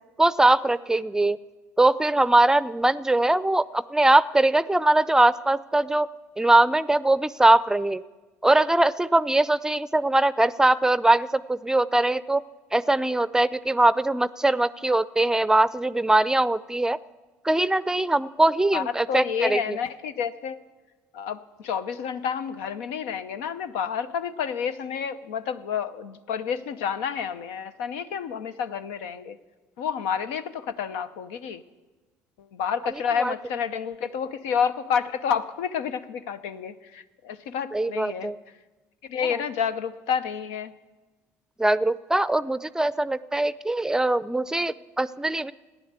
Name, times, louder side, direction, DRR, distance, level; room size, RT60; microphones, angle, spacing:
voice 1, 0.2-1.4 1.8-6.1 6.4-8.0 8.4-12.4 12.7-17.0 17.4-19.8 33.2-33.3 37.7-38.4 39.3-39.4 41.6-45.5, right 2 dB, 10° right, 17 dB, 0.5 m, -21 dB
voice 2, 18.7-20.6 21.1-29.4 29.8-31.6 32.4-38.3 39.1-40.7, left 7 dB, 90° left, 11 dB, 0.8 m, -29 dB
15.5 x 10.5 x 8.1 m, 1.2 s
supercardioid pair, 85°, 7 cm